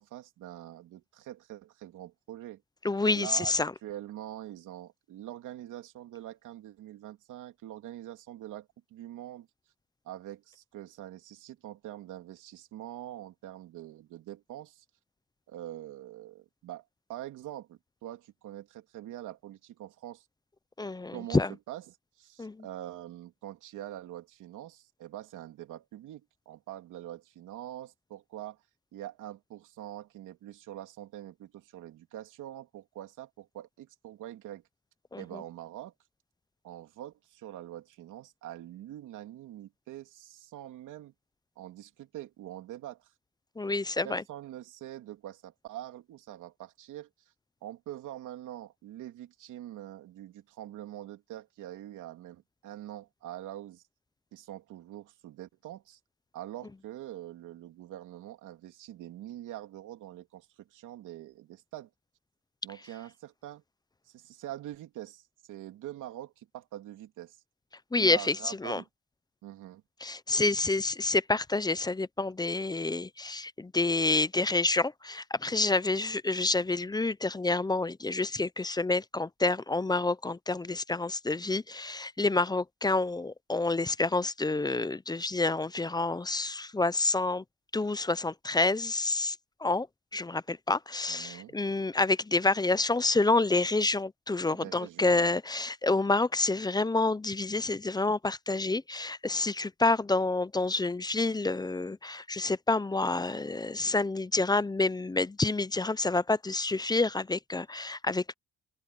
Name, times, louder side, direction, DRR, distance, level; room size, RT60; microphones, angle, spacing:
voice 1, 0.0-2.6 3.1-3.5 3.8-9.5 10.0-14.8 15.5-16.8 17.1-20.2 21.1-21.4 21.7-21.8 22.2-28.6 28.9-34.6 35.2-35.9 36.6-41.1 41.6-43.1 44.0-47.1 47.6-53.8 54.3-56.0 56.3-61.9 62.6-63.6 64.1-67.4 68.0-68.9 69.4-69.8 91.1-91.6 94.5-95.3, right 13 dB, 85° right, 3.0 m, -44 dB
voice 2, 2.8-3.7 20.8-21.5 22.4-22.6 35.1-35.4 43.6-44.2 67.9-68.8 70.0-87.4 87.7-89.9 90.1-108.3, left 3 dB, 15° left, 0.6 m, -28 dB
cardioid pair, 90°, 30 cm